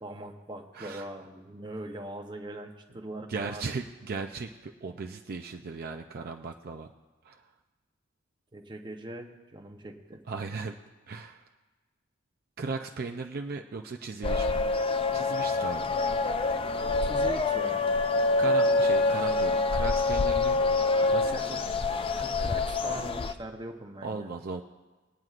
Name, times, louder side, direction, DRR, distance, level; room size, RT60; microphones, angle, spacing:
voice 1, 0.0-3.7 8.5-10.2 17.0-17.9 21.3-21.6 22.1-24.3, right 1 dB, 25° right, 3 dB, 0.9 m, -41 dB
voice 2, 0.7-1.1 3.3-6.9 7.2-7.4 10.3-10.8 11.1-11.4 12.6-14.6 15.1-15.9 18.4-20.6 21.0-21.6 24.0-24.6, right 4 dB, 50° right, 3 dB, 0.4 m, -37 dB
sound 1, 14.2-23.3, left 3 dB, 30° left, 0.4 m, -26 dB
21.0 x 9.2 x 2.5 m, 1.3 s
head